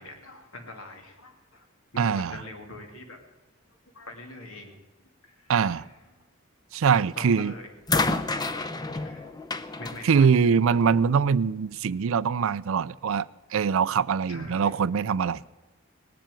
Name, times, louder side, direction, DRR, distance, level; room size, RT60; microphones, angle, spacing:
voice 1, 0.0-1.7 1.9-3.2 3.9-4.8 5.2-5.9 7.2-7.7 8.1-9.4 9.8-10.3 14.3-14.7, left 2 dB, 70° left, 2.6 m, -43 dB
voice 2, 2.0-2.4 5.5-5.9 6.7-7.5 10.0-15.4, right 6 dB, 70° right, 0.4 m, -23 dB
sound 1, 6.9-7.3 7.9-11.1 12.2-12.3, left 3 dB, 20° left, 0.6 m, -30 dB
18.5 x 7.5 x 9.0 m
head